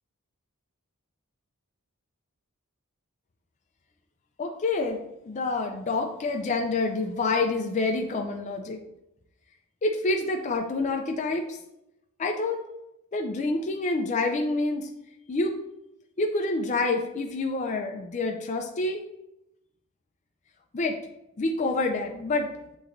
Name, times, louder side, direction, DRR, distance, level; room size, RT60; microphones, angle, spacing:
voice 1, 4.4-8.8 9.8-11.6 12.2-12.6 13.1-14.9 15.3-15.6 16.2-19.0 20.7-21.0 21.4-22.5, left 3 dB, 35° left, 2 dB, 0.4 m, -27 dB
6.6 x 3.0 x 2.5 m, 0.85 s
head